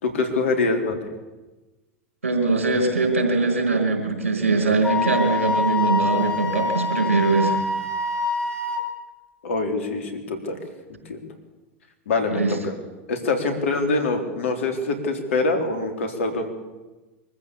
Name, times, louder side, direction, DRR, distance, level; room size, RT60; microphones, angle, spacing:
voice 1, 0.0-1.1 9.4-10.6 11.1-11.2 12.1-12.7 13.1-16.5, left 3 dB, 75° left, 5 dB, 3.8 m, -24 dB
voice 2, 2.2-7.6 12.3-12.6, right 3 dB, 90° right, 4 dB, 4.8 m, -21 dB
Wind instrument woodwind instrument, 4.8-8.8, left 3 dB, 15° left, 4.5 m, -25 dB
24.0 x 14.5 x 8.5 m, 1.1 s
hypercardioid pair, 90°, 7 cm